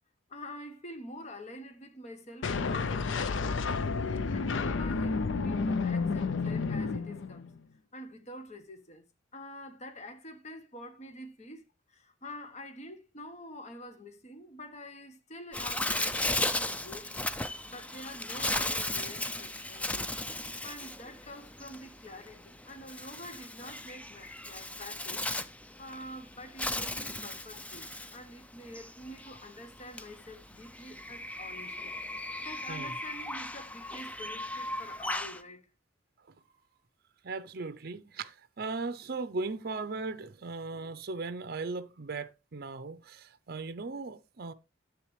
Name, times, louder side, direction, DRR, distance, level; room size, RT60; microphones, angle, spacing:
voice 1, 0.3-3.8 4.3-7.5 7.9-9.0 9.3-20.1 20.6-25.3 25.8-35.7, left 1 dB, 35° left, 1.1 m, -47 dB
sound 1, 2.4-7.6, left 4 dB, 70° left, 0.5 m, -31 dB
Bird, 15.5-35.4, left 1 dB, 5° left, 0.4 m, -36 dB
voice 2, 37.2-44.5, right 3 dB, 50° right, 0.6 m, -38 dB
10.0 x 7.5 x 3.2 m
head